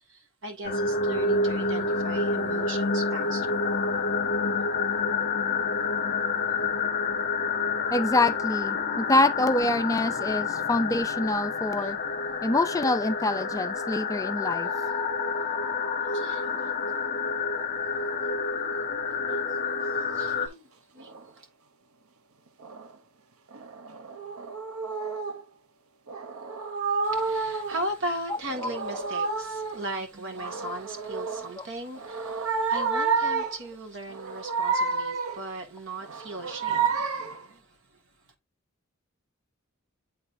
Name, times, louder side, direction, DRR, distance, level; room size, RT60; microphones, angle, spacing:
voice 1, 0.4-3.6 4.4-4.6 11.8-11.9 16.0-16.9 19.3-19.9 20.2-20.6 20.9-21.1 27.0-36.9, right 1 dB, 60° right, 1.9 m, -38 dB
sound 1, 0.6-20.5, left 4 dB, 45° left, 0.9 m, -28 dB
voice 2, 7.9-12.0 12.4-14.7 31.6-31.7, left 2 dB, 15° left, 0.4 m, -25 dB
sound 2, 21.0-21.3 22.6-22.9 23.5-25.4 26.1-27.9 28.3-29.9 30.3-31.5 31.9-33.7 34.1-35.5 36.0-37.4, right 5 dB, 75° right, 0.8 m, -30 dB
9.5 x 3.9 x 2.6 m
head